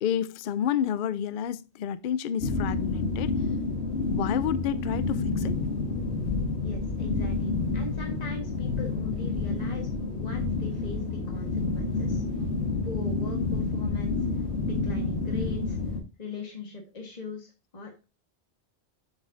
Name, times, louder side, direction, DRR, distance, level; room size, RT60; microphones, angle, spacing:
voice 1, 0.0-3.4 4.1-5.6, left 9 dB, 60° left, 0.6 m, -30 dB
sound 1, 2.4-16.0, left 3 dB, 80° left, 1.6 m, -29 dB
voice 2, 6.6-12.2 12.8-15.8 16.2-18.0, left 3 dB, 40° left, 1.6 m, -40 dB
7.3 x 7.3 x 2.6 m
omnidirectional pair, 1.1 m